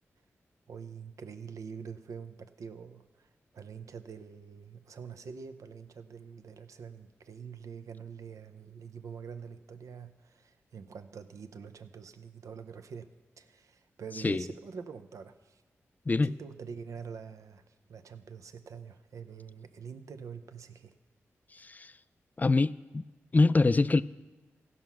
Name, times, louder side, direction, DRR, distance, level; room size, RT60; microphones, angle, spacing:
voice 1, 0.7-15.6 16.2-20.9, right 6 dB, 75° right, 9 dB, 0.7 m, -45 dB
voice 2, 21.5-21.9 22.4-23.0 23.3-24.0, left 3 dB, 30° left, 15 dB, 0.4 m, -25 dB
15.5 x 5.7 x 6.0 m, 1.2 s
cardioid pair, 50°, 6 cm